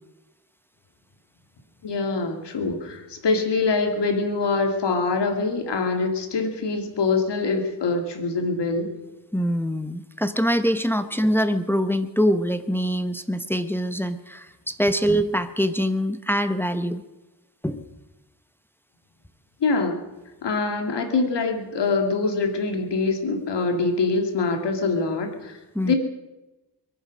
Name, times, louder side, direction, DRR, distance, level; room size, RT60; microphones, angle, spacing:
voice 1, 1.8-8.9 19.6-20.0 20.4-25.6 25.8-26.0, left 3 dB, 75° left, 5 dB, 2.2 m, -24 dB
voice 2, 9.3-17.0 17.6-17.9 25.7-25.9, equal, 5° left, 10 dB, 0.8 m, -24 dB
22.0 x 9.9 x 6.3 m, 1.1 s
wide cardioid pair, 100°, 42 cm